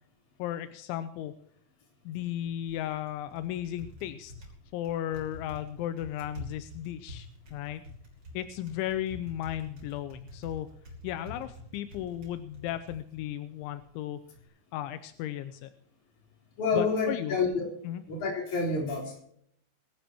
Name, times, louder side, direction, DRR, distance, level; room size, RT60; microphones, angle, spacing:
voice 1, 0.4-1.3 2.1-4.3 4.7-7.8 8.3-10.7 11.0-14.2 14.7-15.7 16.7-17.4 17.8-18.0, left 12 dB, 85° left, 11 dB, 3.0 m, -35 dB
Typing, 2.0-14.5, left 1 dB, 25° right, 3.4 m, -48 dB
voice 2, 16.6-17.7 18.1-19.2, left 4 dB, 40° left, 0 dB, 4.9 m, -28 dB
21.0 x 13.0 x 2.9 m, 0.69 s
omnidirectional pair, 5.4 m